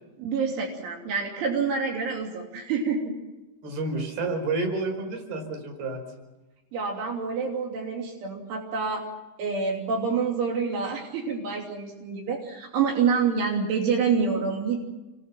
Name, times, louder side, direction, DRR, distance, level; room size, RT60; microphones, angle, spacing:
voice 1, 0.2-3.1 6.7-9.0 9.4-14.8, right 5 dB, 85° right, 0 dB, 5.5 m, -27 dB
voice 2, 3.6-6.0, right 3 dB, 55° right, 4 dB, 6.8 m, -29 dB
28.5 x 23.0 x 7.6 m, 1.1 s
omnidirectional pair, 5.4 m